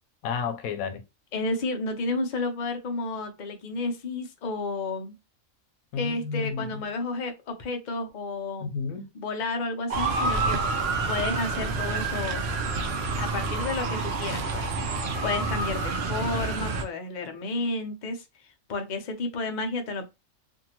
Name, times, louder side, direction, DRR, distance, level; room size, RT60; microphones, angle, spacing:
voice 1, 0.2-1.0 5.9-6.8 8.6-9.1, left 5 dB, 90° left, 1.0 m, -31 dB
voice 2, 1.3-5.1 6.0-8.7 9.1-10.6 11.1-12.4 13.2-14.7 15.2-18.2 18.7-20.0, left 3 dB, 50° left, 0.6 m, -31 dB
Motor vehicle (road) / Siren, 9.9-16.8, right 3 dB, 60° right, 0.7 m, -28 dB
2.6 x 2.6 x 2.8 m
omnidirectional pair, 1.4 m